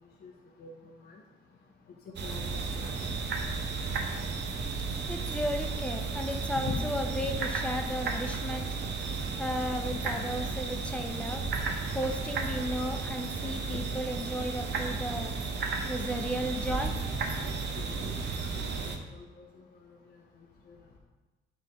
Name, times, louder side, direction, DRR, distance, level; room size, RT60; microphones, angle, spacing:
voice 1, 2.2-3.2 6.6-6.8 9.9-10.0 17.4-19.5 20.7-20.8, left 6 dB, 55° left, 0 dB, 0.8 m, -42 dB
sound 1, 2.2-19.0, right 4 dB, 60° right, 0.8 m, -33 dB
voice 2, 5.1-8.7 9.4-11.4 11.9-15.3 15.9-16.9, equal, 5° left, 4 dB, 0.7 m, -34 dB
9.0 x 3.3 x 3.5 m, 1.2 s
cardioid pair, 90°, 20 cm